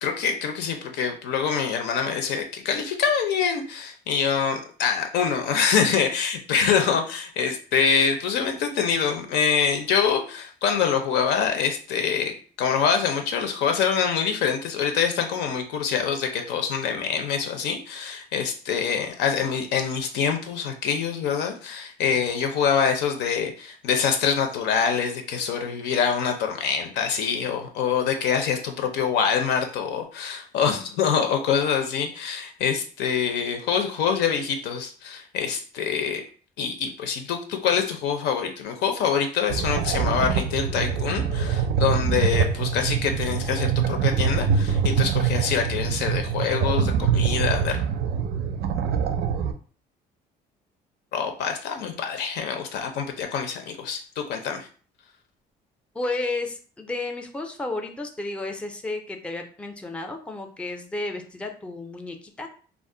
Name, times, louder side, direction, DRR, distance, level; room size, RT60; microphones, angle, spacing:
voice 1, 0.0-36.2 36.6-47.8 51.1-54.7, left 7 dB, 80° left, 5 dB, 0.6 m, -25 dB
sound 1, 39.5-49.5, right 7 dB, 70° right, 0.4 m, -24 dB
voice 2, 55.9-62.5, left 2 dB, 5° left, 5 dB, 0.4 m, -32 dB
2.4 x 2.0 x 3.7 m, 0.41 s
cardioid pair, 110°, 17 cm